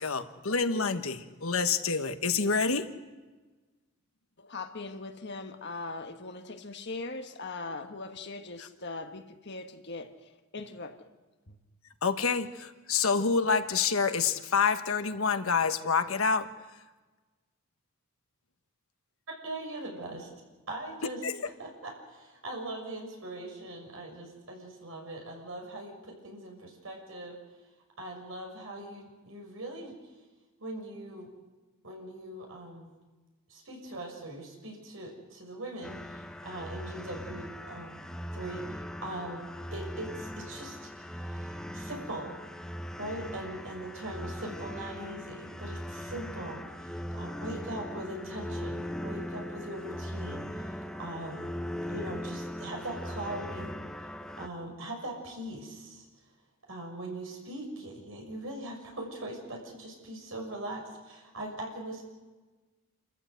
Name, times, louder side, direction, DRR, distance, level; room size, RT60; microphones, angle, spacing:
voice 1, 0.0-2.9 12.0-16.5 21.2-21.3, left 5 dB, 80° left, 1.3 m, -27 dB
voice 2, 4.4-11.1 11.5-11.6, left 3 dB, 55° left, 1.5 m, -40 dB
voice 3, 19.4-20.2 20.7-21.2 21.6-27.4 28.0-29.9 30.6-31.3 31.8-32.9 33.5-38.0 38.3-39.4 39.7-42.5 43.0-51.4 51.9-54.1 54.4-56.1 56.7-62.0, right 1 dB, 70° right, 6.4 m, -41 dB
sound 1, 35.8-54.5, equal, 5° left, 0.8 m, -39 dB
28.5 x 14.5 x 8.0 m
head